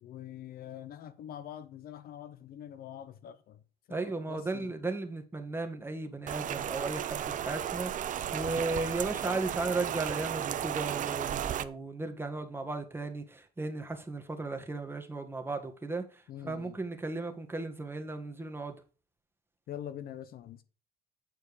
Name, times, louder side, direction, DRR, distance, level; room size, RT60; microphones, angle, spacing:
voice 1, 0.0-3.6 3.9-4.7 16.3-16.8 19.7-20.6, left 10 dB, 65° left, 0.9 m, -44 dB
voice 2, 3.9-18.8, right 3 dB, 15° right, 1.7 m, -36 dB
Rain, 6.3-11.6, right 10 dB, 50° right, 0.7 m, -34 dB
9.2 x 4.5 x 4.9 m
cardioid pair, 110°, 17 cm